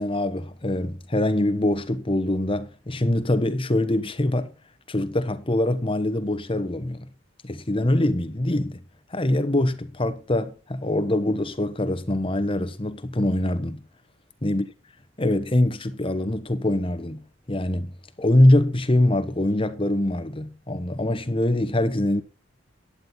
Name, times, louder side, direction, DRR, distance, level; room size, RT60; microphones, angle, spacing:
voice 1, 0.0-4.5 4.9-7.1 7.4-8.8 9.1-13.8 14.4-14.7 15.2-17.9 18.2-22.2, left 1 dB, 30° left, 1.2 m, -23 dB
11.5 x 9.0 x 4.3 m
head